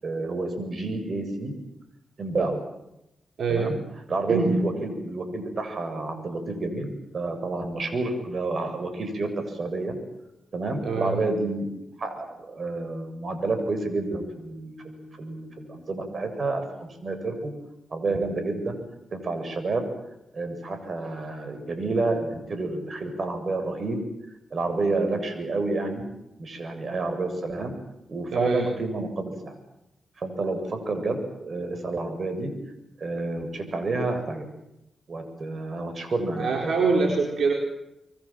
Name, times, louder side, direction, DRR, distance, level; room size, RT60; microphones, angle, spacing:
voice 1, 0.0-1.5 2.2-2.6 3.5-3.8 4.1-10.0 10.5-11.7 12.0-17.5 17.9-18.8 19.1-19.8 20.3-24.0 24.5-26.1 26.4-27.7 28.1-29.6 30.2-32.5 33.0-34.5 35.1-36.7, right 3 dB, 55° right, 7 dB, 7.6 m, -29 dB
voice 2, 3.4-3.7 4.3-4.6 10.8-11.2 28.3-28.6 36.4-37.5, right 4 dB, 75° right, 2 dB, 4.3 m, -24 dB
26.0 x 23.5 x 7.6 m, 0.87 s
cardioid pair, 55°, 0 cm